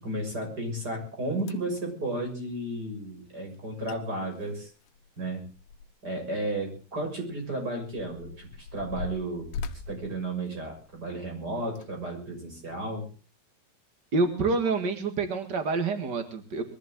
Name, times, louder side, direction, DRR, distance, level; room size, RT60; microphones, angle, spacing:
voice 1, 0.0-4.7 5.2-5.4 6.0-9.5 9.9-13.1, right 1 dB, 20° right, 3 dB, 6.8 m, -33 dB
sound 1, 0.9-1.0 1.4-1.8 3.5-3.6 3.9-4.0 4.3-6.1 6.5-6.6 7.3-11.1 11.6-11.9 12.5-12.6, left 4 dB, 85° left, 3.7 m, -40 dB
voice 2, 14.1-16.6, right 3 dB, 70° right, 7 dB, 1.0 m, -27 dB
22.5 x 15.0 x 3.8 m, 0.36 s
omnidirectional pair, 5.4 m